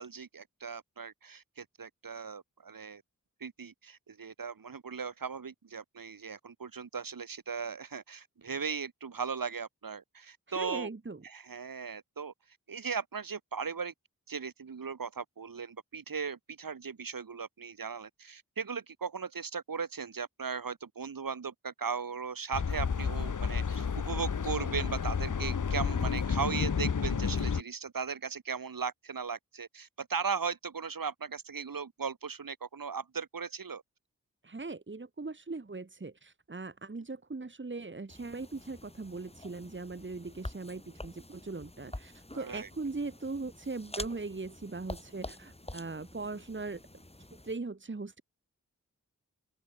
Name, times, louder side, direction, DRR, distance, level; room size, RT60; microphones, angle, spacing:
voice 1, 0.0-3.0 3.4-10.9 11.2-12.3 12.7-13.9 14.3-33.8 42.3-42.7, right 5 dB, 85° right, 5.4 m, -37 dB
voice 2, 10.5-11.2 34.4-46.8 47.3-48.2, right 3 dB, 35° right, 2.4 m, -40 dB
sound 1, 22.5-27.6, left 6 dB, 65° left, 1.5 m, -31 dB
sound 2, 38.1-47.5, left 1 dB, 20° left, 7.1 m, -47 dB
open air
wide cardioid pair, 70°, 33 cm